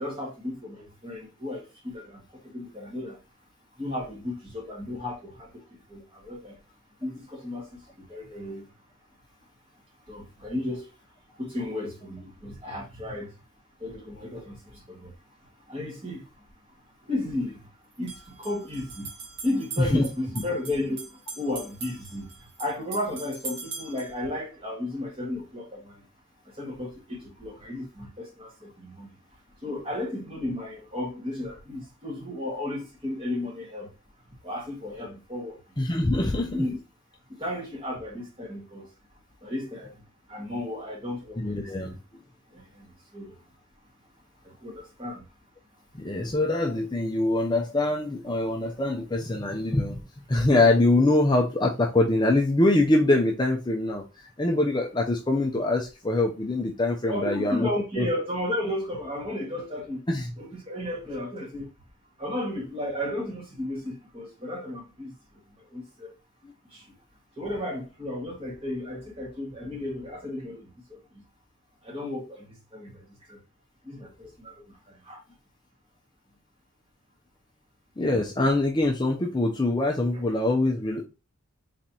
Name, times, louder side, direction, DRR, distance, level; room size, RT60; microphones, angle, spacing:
voice 1, 0.0-2.2 2.5-3.2 3.8-5.6 5.9-6.5 7.0-7.7 8.1-8.6 10.1-10.9 11.4-13.3 13.8-15.1 15.7-16.2 17.1-17.7 18.0-19.1 19.4-22.3 22.6-26.0 26.6-29.1 29.6-33.9 34.4-35.6 36.5-36.8 37.4-38.9 39.4-39.9 40.3-41.5 41.8-41.9 42.5-42.8 43.1-43.4 44.4-45.2 57.1-60.0 60.4-61.7 62.2-65.1 65.7-66.1 66.7-66.8 67.4-71.0 71.8-72.9 73.3-73.4 73.8-74.6 75.0-75.2, left 1 dB, 25° right, 1.8 m, -33 dB
sound 1, 16.3-16.4 17.9-24.2, right 4 dB, 55° right, 1.3 m, -41 dB
voice 2, 35.8-36.7 41.4-42.0 45.9-50.0 50.3-57.7 58.0-58.1 60.1-60.3 66.4-66.5 78.0-81.0, left 2 dB, 20° left, 0.5 m, -24 dB
4.2 x 3.8 x 2.8 m
head